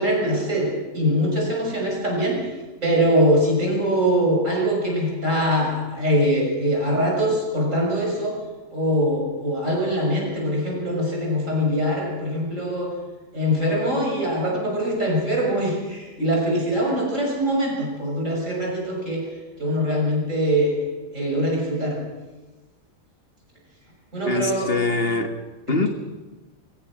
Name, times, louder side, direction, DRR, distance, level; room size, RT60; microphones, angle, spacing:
voice 1, 0.0-2.5 2.8-8.4 8.7-12.9 13.3-19.2 19.6-20.8 21.1-22.0 24.1-24.7 25.7-25.9, equal, 65° right, 6.8 m, -23 dB
voice 2, 24.2-25.3 25.7-25.9, left 3 dB, 45° left, 1.7 m, -23 dB
22.5 x 20.5 x 6.2 m
omnidirectional pair, 1.4 m